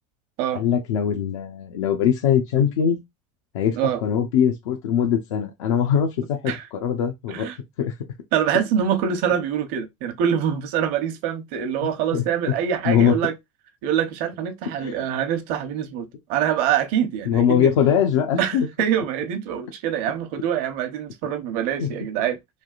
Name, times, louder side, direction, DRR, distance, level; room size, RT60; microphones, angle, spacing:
voice 1, 0.5-3.0 3.5-7.5 7.8-7.9 11.8-12.5 12.8-13.2 14.8-15.0 17.3-18.7 21.8-21.9, left 8 dB, 85° left, 0.7 m, -22 dB
voice 2, 8.3-13.3 13.8-17.7 18.4-22.4, right 9 dB, 60° right, 0.8 m, -25 dB
3.4 x 2.3 x 2.4 m
supercardioid pair, 120°, 16 cm